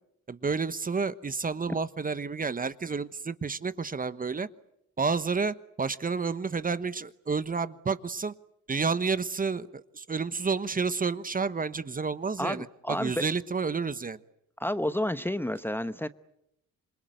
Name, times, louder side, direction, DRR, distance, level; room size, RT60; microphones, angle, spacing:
voice 1, 0.3-4.5 5.0-8.3 8.7-14.2, right 5 dB, 30° right, 14 dB, 1.1 m, -30 dB
voice 2, 12.4-13.2 14.6-16.1, left 1 dB, 5° left, 13 dB, 1.0 m, -30 dB
27.0 x 21.5 x 9.3 m, 0.79 s
supercardioid pair, 75°, 30 cm